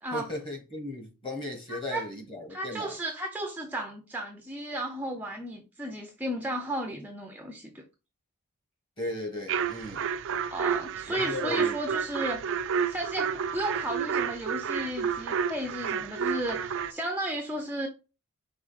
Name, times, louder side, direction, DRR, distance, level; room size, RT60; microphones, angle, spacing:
voice 1, 0.1-3.0 9.0-10.1 11.1-11.8, left 2 dB, 25° left, 1.4 m, -36 dB
voice 2, 1.7-2.1 2.5-7.8 10.5-12.4 12.9-17.9, right 1 dB, 10° right, 0.5 m, -34 dB
sound 1, 9.5-16.9, right 7 dB, 60° right, 0.4 m, -30 dB
4.9 x 3.8 x 2.4 m
head